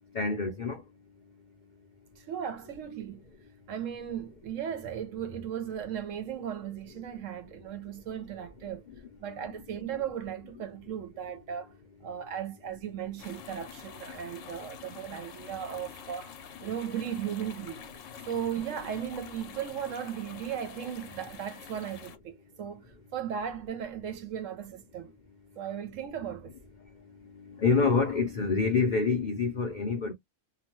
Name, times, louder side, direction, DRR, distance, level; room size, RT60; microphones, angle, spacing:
voice 1, 0.1-0.8 27.3-30.1, left 4 dB, 80° left, 0.4 m, -27 dB
voice 2, 2.2-3.2 3.7-8.8 9.2-11.7 12.0-16.3 16.6-17.9 18.2-22.9 23.1-25.2 25.6-26.5, right 9 dB, 65° right, 0.9 m, -36 dB
sound 1, 13.2-22.2, left 7 dB, 65° left, 0.9 m, -47 dB
2.8 x 2.2 x 2.9 m
omnidirectional pair, 1.6 m